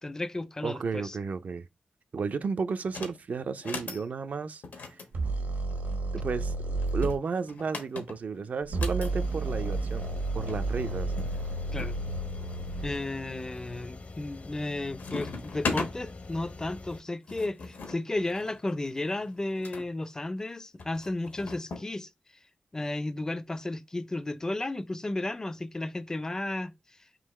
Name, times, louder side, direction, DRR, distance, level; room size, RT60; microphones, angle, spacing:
voice 1, 0.0-1.2 11.7-12.0 12.8-22.1 22.7-26.7, left 2 dB, 20° left, 0.4 m, -33 dB
voice 2, 0.6-1.7 2.1-4.6 6.1-6.5 6.9-10.1 10.3-11.1, right 5 dB, 55° right, 0.4 m, -32 dB
sound 1, 2.8-3.2 3.5-4.0 4.6-6.0 6.8-9.1 10.2-10.3 10.5-10.6 11.2-12.0 12.5-13.0 13.6-14.0 14.3-14.7 15.0-15.9 16.9-19.9 20.8-21.9, left 4 dB, 80° left, 1.1 m, -39 dB
sound 2, 5.1-7.1 8.6-13.0, right 2 dB, 85° right, 1.1 m, -31 dB
sound 3, 9.0-17.0, left 3 dB, 55° left, 0.7 m, -44 dB
3.8 x 2.8 x 4.1 m
wide cardioid pair, 105°, 3 cm